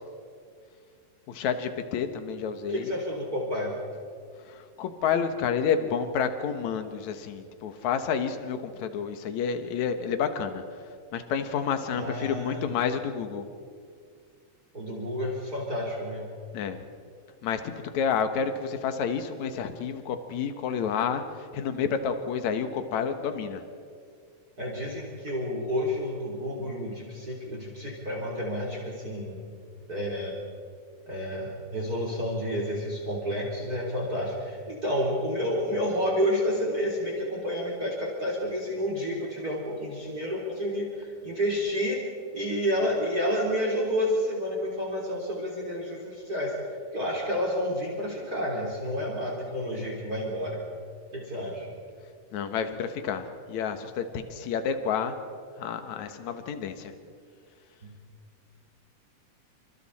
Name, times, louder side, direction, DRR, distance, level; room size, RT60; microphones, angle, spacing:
voice 1, 1.3-2.9 4.5-10.6 11.1-13.5 16.5-16.8 17.4-21.2 21.5-23.6 52.3-55.2 55.6-56.9, left 7 dB, 70° left, 8 dB, 2.6 m, -29 dB
voice 2, 2.7-3.8 11.9-12.7 14.7-16.3 24.6-29.4 29.9-30.4 31.1-42.0 42.3-46.5 46.9-50.6 51.1-51.7 57.8-57.9, equal, 30° right, -3 dB, 4.2 m, -30 dB
29.0 x 26.5 x 4.3 m, 2.2 s
omnidirectional pair, 3.6 m